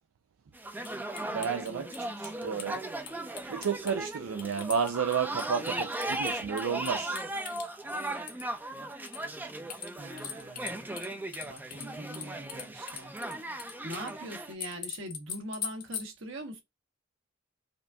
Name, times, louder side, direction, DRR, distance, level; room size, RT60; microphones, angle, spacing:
sound 1, 0.5-14.5, right 1 dB, 10° right, 0.4 m, -37 dB
sound 2, 0.9-2.7 3.1-3.9 4.4-7.6 8.2-8.6 9.1-9.2 9.7-11.1 11.3-14.1 14.6-16.1, left 8 dB, 45° left, 0.8 m, -41 dB
voice 1, 1.3-2.9 3.5-7.2, right 6 dB, 85° right, 0.4 m, -32 dB
voice 2, 2.1-2.8 10.0-10.9 11.4-13.1 13.4-16.6, right 1 dB, 65° right, 1.1 m, -43 dB
5.0 x 2.6 x 2.2 m
head